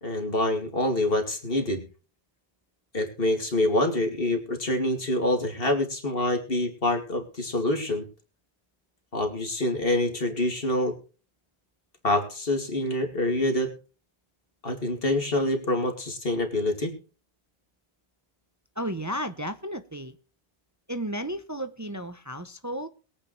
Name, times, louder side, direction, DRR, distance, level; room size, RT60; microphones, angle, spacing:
voice 1, 0.0-1.8 2.9-8.1 9.1-11.0 12.0-13.7 14.6-16.9, left 1 dB, 65° left, 5 dB, 2.8 m, -26 dB
voice 2, 18.8-20.2 20.9-22.9, equal, 20° right, 10 dB, 0.8 m, -33 dB
21.5 x 9.0 x 3.3 m, 0.35 s
omnidirectional pair, 1.0 m